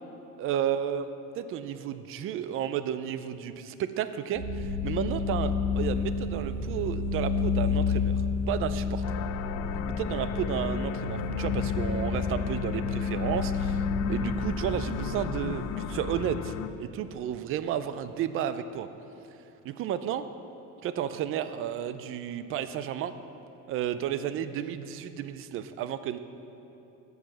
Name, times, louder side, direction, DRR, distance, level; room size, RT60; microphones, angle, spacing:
voice 1, 0.4-1.1 1.4-8.1 8.5-9.0 9.9-16.5 16.8-18.9 19.6-20.2 20.8-23.1 23.7-26.2, right 10 dB, 40° right, 12 dB, 0.4 m, -32 dB
sound 1, 4.3-15.9, left 4 dB, 35° left, 2.0 m, -30 dB
sound 2, 9.0-16.7, left 10 dB, 55° left, 0.5 m, -36 dB
14.5 x 4.9 x 6.1 m, 2.9 s
cardioid pair, 175°, 33 cm